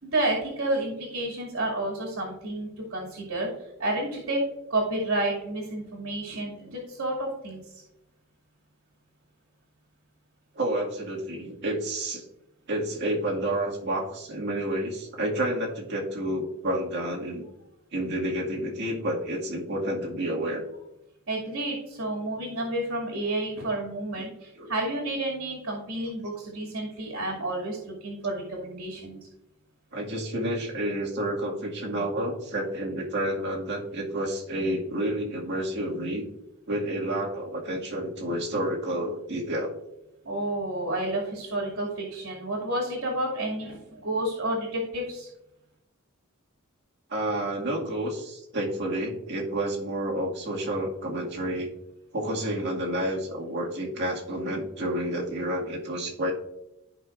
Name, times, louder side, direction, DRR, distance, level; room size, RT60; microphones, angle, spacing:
voice 1, 0.0-3.5 3.8-4.4 4.7-7.6 21.3-29.2 40.2-45.3, right 1 dB, 70° right, -3 dB, 2.5 m, -30 dB
voice 2, 10.6-12.2 12.7-17.4 17.9-20.6 24.2-24.3 24.6-24.7 29.9-36.2 36.7-39.7 47.1-51.7 52.1-56.3, right 1 dB, 55° right, -2 dB, 2.1 m, -30 dB
14.0 x 5.5 x 2.5 m, 0.89 s
head